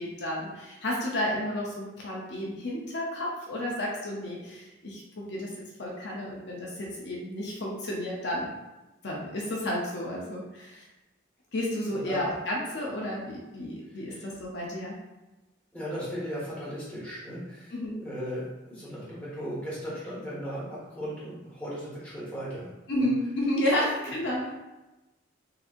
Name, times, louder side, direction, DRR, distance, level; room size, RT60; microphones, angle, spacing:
voice 1, 0.0-5.5 5.8-8.5 9.0-10.9 11.5-15.0 17.7-18.0 22.9-24.5, left 1 dB, 60° left, -3 dB, 0.6 m, -31 dB
voice 2, 13.9-14.3 15.7-23.1 23.7-23.9, equal, 10° left, -9 dB, 1.3 m, -37 dB
4.0 x 2.6 x 2.5 m, 1.1 s
head